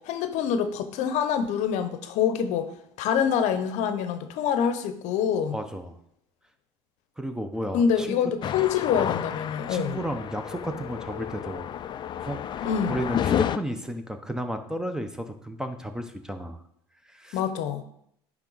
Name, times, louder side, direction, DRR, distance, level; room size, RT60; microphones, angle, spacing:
voice 1, 0.0-2.7 3.0-5.6 7.7-10.0 12.6-13.0 17.3-17.8, left 7 dB, 60° left, 10 dB, 0.8 m, -26 dB
voice 2, 5.5-5.9 7.2-8.2 9.7-11.7 12.2-16.6 17.1-17.4, right 1 dB, 5° right, 8 dB, 0.8 m, -33 dB
sound 1, 8.4-13.6, left 10 dB, 35° left, 0.4 m, -31 dB
9.7 x 3.6 x 4.0 m, 0.71 s
supercardioid pair, 85°, 13 cm